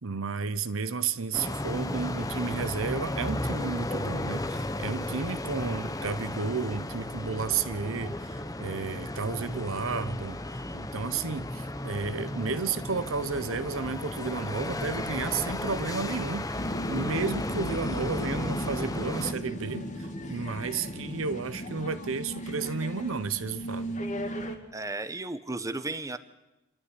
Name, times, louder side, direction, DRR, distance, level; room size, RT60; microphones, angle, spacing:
voice 1, 0.0-16.5 16.9-24.0, right 5 dB, 75° right, 13 dB, 0.9 m, -32 dB
sound 1, 1.3-19.3, left 1 dB, 15° left, 0.9 m, -34 dB
sound 2, 16.6-24.6, equal, 35° left, 2.5 m, -36 dB
voice 2, 24.7-26.2, right 2 dB, 15° right, 10 dB, 1.0 m, -34 dB
27.5 x 12.5 x 9.9 m, 0.94 s
head